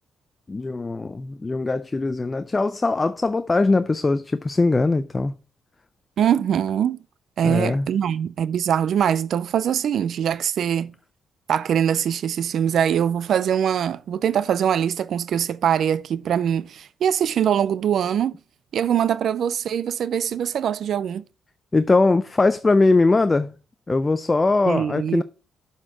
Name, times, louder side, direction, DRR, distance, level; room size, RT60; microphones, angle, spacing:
voice 1, 0.5-5.3 7.4-7.9 21.7-23.6 23.9-25.2, left 3 dB, 25° left, 0.4 m, -21 dB
voice 2, 6.2-7.0 7.4-10.9 11.5-18.4 18.7-21.2 24.7-25.2, right 9 dB, 65° right, 0.3 m, -22 dB
7.4 x 4.4 x 4.9 m
cardioid pair, 90°, 0 cm